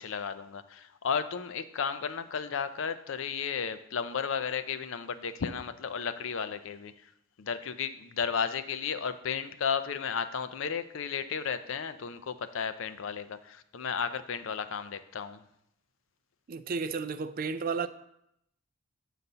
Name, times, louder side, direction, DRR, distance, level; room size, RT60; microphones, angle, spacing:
voice 1, 0.0-6.9 7.4-15.4, left 6 dB, 60° left, 0.5 m, -33 dB
voice 2, 16.5-17.9, right 5 dB, 40° right, 0.3 m, -32 dB
8.3 x 4.0 x 5.5 m
head